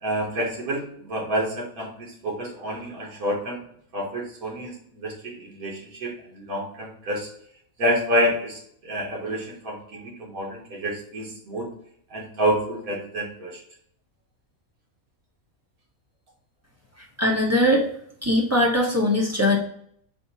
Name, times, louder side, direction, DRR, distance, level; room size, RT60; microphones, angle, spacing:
voice 1, 0.0-3.6 3.9-7.3 7.8-11.7 12.1-13.6, equal, 80° right, -2 dB, 1.6 m, -28 dB
voice 2, 17.0-17.9 18.2-19.6, left 1 dB, 15° right, -2 dB, 0.6 m, -21 dB
4.2 x 2.6 x 4.0 m, 0.65 s
omnidirectional pair, 1.5 m